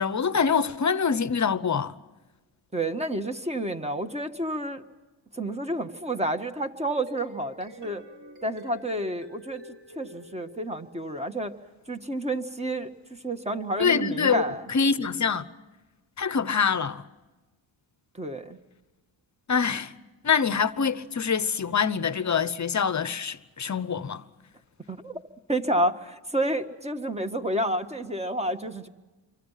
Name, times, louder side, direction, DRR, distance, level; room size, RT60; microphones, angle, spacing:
voice 1, 0.0-1.9 13.8-14.4 14.7-15.5 16.2-17.0 19.5-19.9 20.2-24.2, left 6 dB, 35° left, 1.0 m, -25 dB
voice 2, 2.7-4.8 5.3-8.0 8.4-9.6 10.0-11.5 11.9-14.7 18.1-18.6 24.9-25.2 25.5-28.9, right 1 dB, 15° right, 1.7 m, -30 dB
sound 1, 7.1-11.2, left 1 dB, 70° right, 7.8 m, -48 dB
28.0 x 24.5 x 5.8 m
cardioid pair, 85°, 47 cm